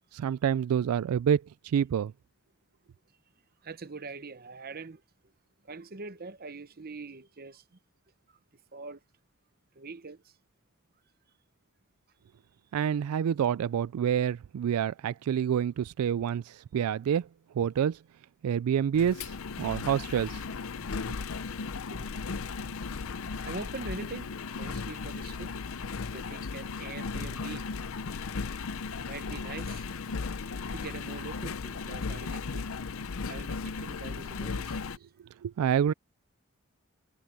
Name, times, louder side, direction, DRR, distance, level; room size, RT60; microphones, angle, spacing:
voice 1, 0.1-2.1 12.7-17.3 17.5-18.0 18.4-20.4 35.4-35.9, right 8 dB, 80° right, 0.3 m, -28 dB
voice 2, 3.6-5.0 5.6-7.6 8.7-9.0 9.8-10.2 21.9-22.1 22.6-22.7 23.4-25.6 26.1-27.7 29.0-29.9 30.4-32.7 33.3-34.8 35.8-35.9, right 3 dB, 45° right, 0.8 m, -43 dB
Engine, 18.9-35.0, left 4 dB, 65° left, 0.6 m, -36 dB
head